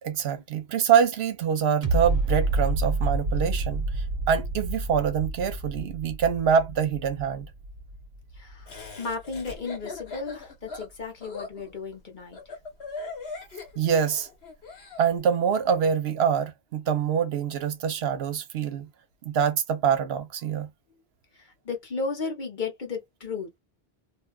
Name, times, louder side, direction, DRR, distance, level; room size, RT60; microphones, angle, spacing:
voice 1, 0.0-7.5 13.8-14.3 15.0-18.9 19.2-20.7, right 7 dB, 75° right, 0.9 m, -25 dB
sound 1, 1.8-8.9 9.3-9.4, right 2 dB, 40° right, 0.9 m, -29 dB
voice 2, 8.4-12.4 21.4-23.6, left 4 dB, 50° left, 1.1 m, -34 dB
Laughter, 8.7-15.0, left 3 dB, 75° left, 1.4 m, -40 dB
2.7 x 2.3 x 2.2 m
omnidirectional pair, 1.1 m